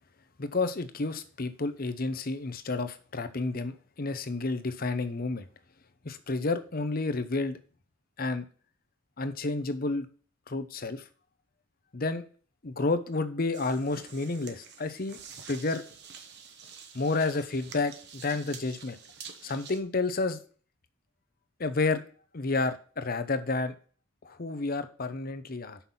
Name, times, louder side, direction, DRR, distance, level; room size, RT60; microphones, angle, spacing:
voice 1, 0.4-5.5 6.0-7.6 8.2-8.4 9.2-10.1 10.5-11.1 11.9-12.2 12.6-15.2 15.5-15.8 16.9-19.0 19.4-20.4 21.6-22.0 22.3-23.7 24.2-25.8, left 3 dB, 45° left, 11 dB, 0.8 m, -30 dB
sound 1, 13.5-19.8, right 6 dB, 55° right, 1.2 m, -48 dB
5.9 x 5.7 x 7.1 m, 0.41 s
head